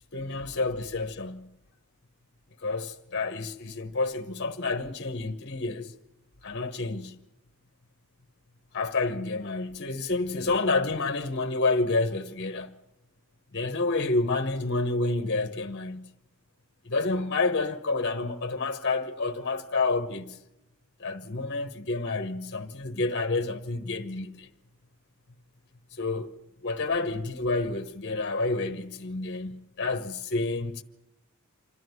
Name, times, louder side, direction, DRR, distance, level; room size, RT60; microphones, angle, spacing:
voice 1, 0.1-1.5 2.6-5.9 6.4-7.2 8.7-12.7 13.5-16.1 16.8-20.4 21.0-24.5 26.0-26.3 26.6-30.8, left 3 dB, 50° left, 1.1 m, -29 dB
27.0 x 12.5 x 9.5 m
head